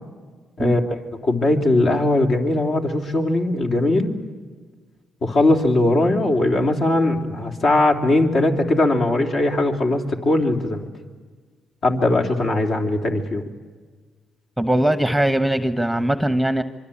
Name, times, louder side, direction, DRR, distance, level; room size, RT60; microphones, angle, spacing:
voice 1, 0.6-4.2 5.2-10.8 11.8-13.4, left 2 dB, 55° left, 2 dB, 3.3 m, -20 dB
voice 2, 14.6-16.6, right 1 dB, ahead, 10 dB, 1.1 m, -20 dB
26.0 x 24.0 x 8.7 m, 1.5 s
cardioid pair, 95°, 0 cm